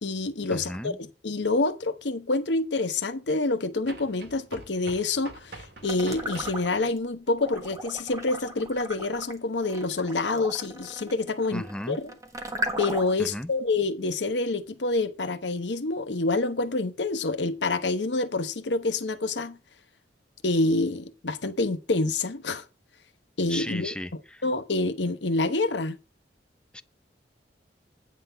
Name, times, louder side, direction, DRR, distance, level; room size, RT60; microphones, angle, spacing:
voice 1, 0.0-12.0 12.8-19.6 20.4-22.6 23.4-23.9 24.4-26.0, left 3 dB, 85° left, 1.0 m, -27 dB
voice 2, 0.5-1.0 11.5-12.0 13.2-13.5 23.5-24.4 26.7-26.8, left 1 dB, 5° left, 0.5 m, -35 dB
sound 1, 1.4-1.5 3.8-6.7, right 2 dB, 70° right, 2.0 m, -44 dB
sound 2, 5.8-7.0 7.4-13.3, right 1 dB, 20° right, 1.4 m, -36 dB
9.3 x 3.9 x 6.7 m
head